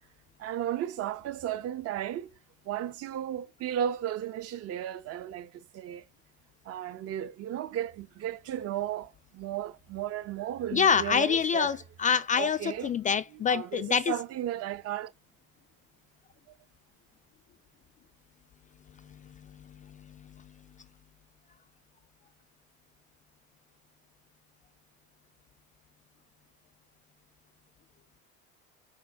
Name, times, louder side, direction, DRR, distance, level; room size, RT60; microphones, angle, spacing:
voice 1, 0.4-2.3 2.7-6.0 6.6-11.8 12.4-12.9 13.5-15.1, right 11 dB, 45° right, 0.8 m, -34 dB
voice 2, 10.7-14.1, left 7 dB, 25° left, 0.3 m, -26 dB
6.3 x 4.0 x 5.8 m
supercardioid pair, 130°, 35 cm